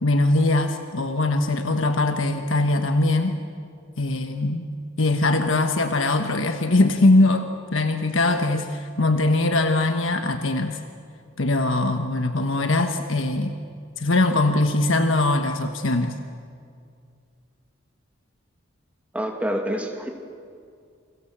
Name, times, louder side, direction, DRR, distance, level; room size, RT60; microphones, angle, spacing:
voice 1, 0.0-3.4 4.0-4.7 5.0-10.8 11.4-13.5 14.0-16.1, left 2 dB, 80° left, 6 dB, 1.3 m, -21 dB
voice 2, 19.1-20.1, equal, 5° right, 2 dB, 2.3 m, -27 dB
29.0 x 24.0 x 7.4 m, 2.3 s
head